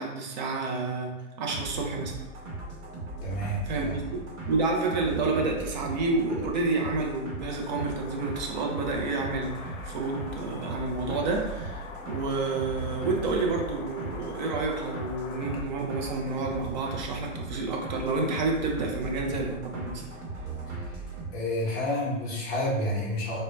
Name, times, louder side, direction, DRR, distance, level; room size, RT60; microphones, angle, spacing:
voice 1, 0.0-2.2 3.7-4.2 4.5-20.1, right 3 dB, 35° right, 0 dB, 0.4 m, -29 dB
sound 1, 1.5-21.3, right 2 dB, 55° right, 1.0 m, -38 dB
voice 2, 3.2-4.0 20.7-21.0 21.3-23.4, left 1 dB, 20° left, -5 dB, 0.6 m, -30 dB
sound 2, 7.4-15.6, left 4 dB, 90° left, 0.5 m, -44 dB
2.1 x 2.1 x 3.1 m, 1.0 s
hypercardioid pair, 125°, 39 cm